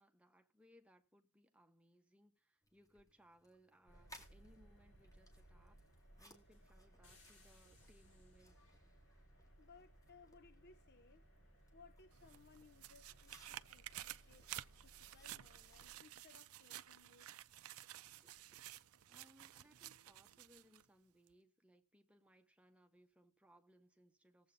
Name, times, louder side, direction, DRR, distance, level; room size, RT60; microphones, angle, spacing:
voice 1, 0.0-5.8 6.2-8.6 19.1-24.5, equal, 5° right, 1.0 m, -69 dB
sound 1, 2.6-19.9, equal, 15° left, 2.1 m, -68 dB
sound 2, 3.9-16.0, right 1 dB, 65° left, 7.3 m, -65 dB
voice 2, 9.5-11.3 11.7-14.5 14.8-17.3, left 4 dB, 50° left, 0.6 m, -65 dB
sound 3, 12.1-20.8 21.3-21.4, right 13 dB, 75° right, 0.5 m, -53 dB
19.5 x 7.9 x 2.6 m
head